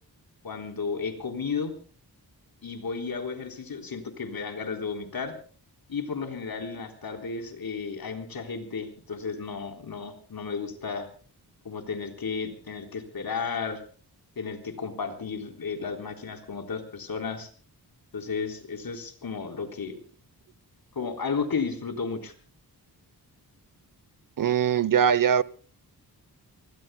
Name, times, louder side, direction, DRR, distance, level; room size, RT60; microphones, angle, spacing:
voice 1, 0.4-1.7 2.6-5.4 5.9-11.1 11.6-13.8 14.4-17.5 18.1-20.0 21.0-22.3, left 5 dB, 65° left, 3.9 m, -33 dB
voice 2, 24.4-25.4, right 8 dB, 55° right, 0.9 m, -21 dB
29.0 x 20.0 x 2.2 m
wide cardioid pair, 90°, 39 cm